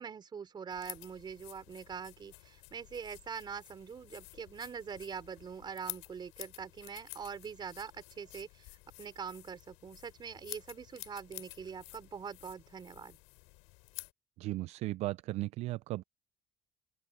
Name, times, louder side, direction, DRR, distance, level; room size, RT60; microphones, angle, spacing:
voice 1, 0.0-13.2, right 6 dB, 40° right, 4.1 m, -44 dB
sound 1, 0.7-14.1, left 27 dB, 85° left, 4.9 m, -51 dB
voice 2, 14.4-16.0, right 18 dB, 70° right, 0.5 m, -36 dB
open air
supercardioid pair, 80°, 11 cm